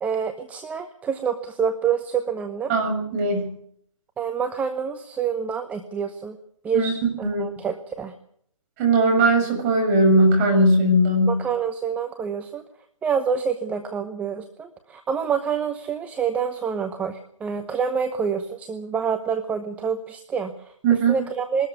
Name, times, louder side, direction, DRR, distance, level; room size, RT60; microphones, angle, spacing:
voice 1, 0.0-2.7 4.2-6.4 6.6-8.1 11.3-12.6 13.0-20.7 21.1-21.7, right 6 dB, 10° right, 7 dB, 0.9 m, -27 dB
voice 2, 2.7-3.5 6.7-6.9 7.2-7.4 8.8-11.4 20.8-21.2, right 1 dB, 25° right, 3 dB, 6.5 m, -19 dB
21.5 x 13.0 x 9.5 m, 0.68 s
figure-of-eight pair, 145°, 17 cm